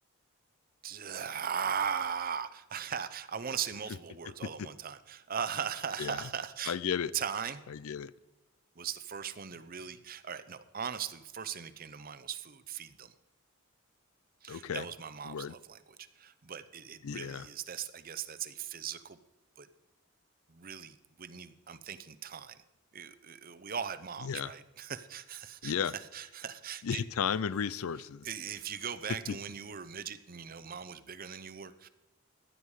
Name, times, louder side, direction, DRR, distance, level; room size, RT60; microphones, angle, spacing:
voice 1, 0.8-6.8 7.1-7.6 8.8-13.1 14.4-19.2 19.6-19.7 20.5-22.6 22.9-27.0 28.2-31.9, right 7 dB, 40° right, 13 dB, 0.7 m, -39 dB
voice 2, 6.6-7.1 7.7-8.1 14.5-14.9 15.3-15.5 17.0-17.5 24.2-24.5 25.6-25.9 26.8-28.3 29.3-29.4, left 7 dB, 80° left, 19 dB, 0.5 m, -34 dB
15.0 x 10.5 x 4.8 m, 1.0 s
head